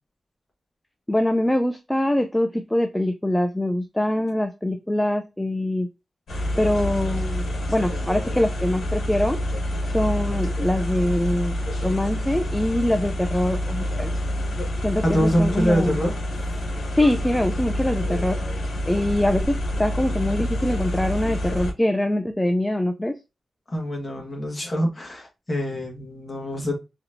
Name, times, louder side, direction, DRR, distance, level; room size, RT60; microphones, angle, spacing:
voice 1, 1.1-5.9 6.6-9.4 9.9-11.5 11.8-14.1 14.8-16.0 16.9-18.4 18.9-23.2, left 1 dB, 5° left, 0.3 m, -23 dB
sound 1, 6.3-21.7, left 1 dB, 75° left, 1.2 m, -27 dB
voice 2, 15.0-16.1 23.7-26.7, equal, 25° left, 1.4 m, -24 dB
4.2 x 2.8 x 2.5 m
wide cardioid pair, 165°, 0 cm